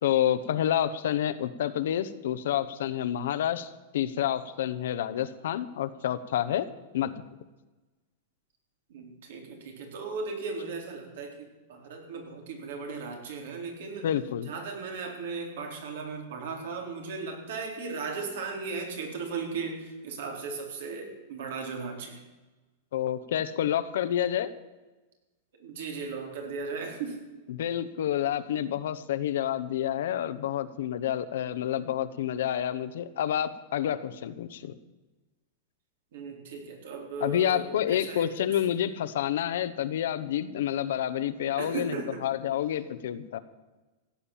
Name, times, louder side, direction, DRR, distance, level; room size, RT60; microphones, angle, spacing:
voice 1, 0.0-6.7 6.9-7.1 14.0-14.5 22.9-24.5 27.5-34.7 37.2-43.4, left 10 dB, 75° left, 11 dB, 1.0 m, -29 dB
voice 2, 8.9-14.1 14.4-22.2 25.6-27.2 36.1-38.3 41.6-42.2, right 4 dB, 75° right, 2 dB, 4.0 m, -37 dB
16.0 x 8.8 x 7.4 m, 1.2 s
supercardioid pair, 155°, 0 cm